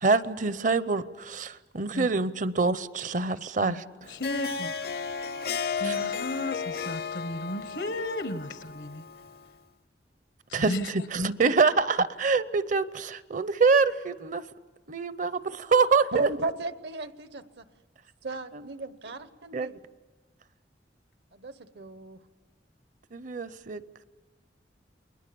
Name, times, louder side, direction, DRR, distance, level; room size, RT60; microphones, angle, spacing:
voice 1, 0.0-3.8 5.8-5.9 10.5-14.4 14.9-16.3 18.5-18.6 19.5-19.7 23.1-23.8, right 4 dB, 45° right, 15 dB, 0.7 m, -25 dB
voice 2, 3.6-5.3 5.8-9.0 10.5-10.9, left 1 dB, 85° left, 10 dB, 1.3 m, -35 dB
Harp, 4.0-9.5, left 5 dB, 60° left, 0.7 m, -34 dB
voice 3, 16.1-17.6 18.2-19.8 21.3-22.2, right 2 dB, 70° right, 13 dB, 1.0 m, -35 dB
29.0 x 21.5 x 6.9 m, 1.3 s
head